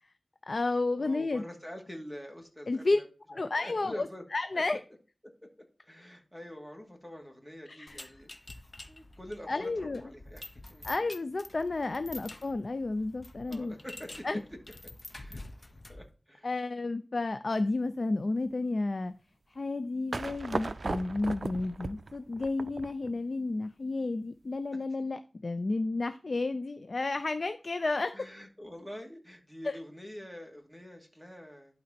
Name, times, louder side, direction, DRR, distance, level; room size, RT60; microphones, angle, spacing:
voice 1, 0.5-1.4 2.7-3.0 3.3-4.8 7.7-8.0 9.5-10.0 10.8-13.7 14.2-14.4 16.4-19.1 19.5-28.2 29.6-29.8, left 3 dB, 65° left, 0.5 m, -31 dB
voice 2, 1.0-3.1 3.3-4.2 4.5-4.6 5.4-5.5 5.8-8.6 8.9-10.4 10.7-10.9 13.5-14.4 15.1-15.4 15.9-16.5 28.1-31.8, equal, 10° left, 2.5 m, -46 dB
sound 1, 7.9-16.1, left 2 dB, 45° left, 1.0 m, -48 dB
sound 2, 20.1-23.1, right 3 dB, 65° right, 0.4 m, -36 dB
11.5 x 4.2 x 4.3 m
wide cardioid pair, 55°, 0 cm